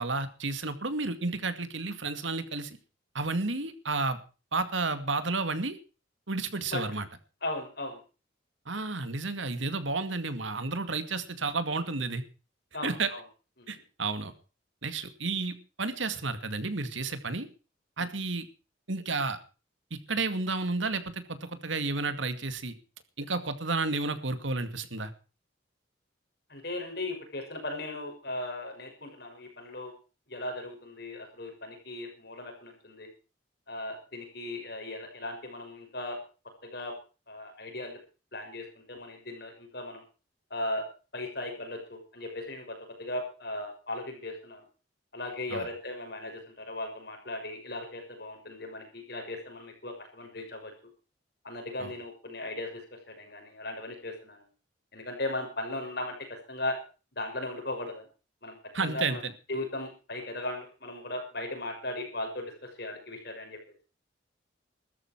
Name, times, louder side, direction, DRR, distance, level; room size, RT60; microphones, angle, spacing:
voice 1, 0.0-2.8 3.1-4.2 4.5-5.8 6.3-7.0 8.7-12.2 12.8-13.1 13.7-14.3 14.8-17.5 18.0-18.5 18.9-19.4 20.1-22.7 23.2-25.1 45.5-45.7 51.8-51.9 58.7-59.3, right 3 dB, 75° right, 10 dB, 2.2 m, -31 dB
voice 2, 7.4-8.0 12.7-13.2 18.0-18.1 26.5-29.9 30.3-33.1 33.7-36.2 36.6-36.9 37.3-38.0 38.3-40.0 40.5-40.8 41.1-42.6 43.0-44.6 45.1-50.7 51.4-52.8 53.1-54.4 54.9-56.2 56.5-56.8 57.2-58.0 58.4-58.6 58.8-59.2 59.5-63.6, left 2 dB, 55° left, 4 dB, 6.3 m, -37 dB
15.5 x 13.5 x 4.7 m, 0.35 s
head